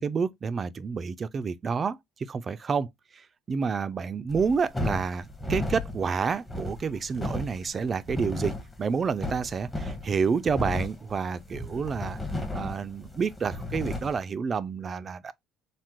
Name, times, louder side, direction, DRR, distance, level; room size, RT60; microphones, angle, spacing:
voice 1, 0.0-2.0 2.3-2.9 3.1-12.2 12.5-15.3, right 5 dB, 35° right, 0.3 m, -29 dB
sound 1, 4.3-14.2, left 1 dB, 15° left, 0.8 m, -34 dB
3.5 x 2.1 x 2.8 m
cardioid pair, 100°, 0 cm